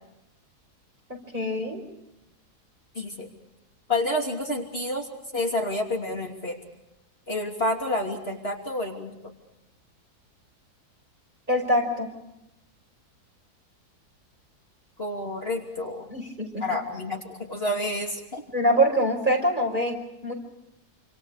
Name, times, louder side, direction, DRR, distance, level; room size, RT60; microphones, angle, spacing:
voice 1, 1.3-1.8 11.5-12.1 16.1-16.6 18.5-20.3, equal, 30° right, 1 dB, 5.6 m, -24 dB
voice 2, 2.9-3.3 3.9-5.0 5.3-6.6 7.3-9.1 15.0-16.1 16.6-17.2 17.5-18.4, left 1 dB, 35° left, 0 dB, 3.1 m, -29 dB
28.0 x 27.0 x 5.0 m, 0.90 s
omnidirectional pair, 1.7 m